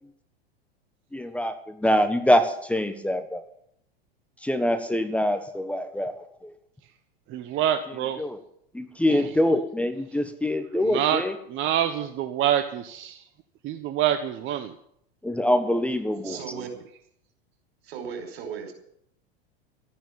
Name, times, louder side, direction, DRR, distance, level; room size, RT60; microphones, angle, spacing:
voice 1, 1.1-3.4 4.4-6.1 6.4-6.5 8.2-8.4 8.7-11.3 15.2-16.4, left 1 dB, 5° left, 8 dB, 1.3 m, -24 dB
voice 2, 7.3-8.2 9.1-9.2 10.9-11.2 11.5-13.2 13.6-14.7, right 10 dB, 40° right, 7 dB, 1.3 m, -26 dB
voice 3, 16.2-16.7 17.8-18.7, right 6 dB, 75° right, 5 dB, 5.1 m, -36 dB
13.5 x 10.5 x 8.8 m, 0.71 s
hypercardioid pair, 100°, 31 cm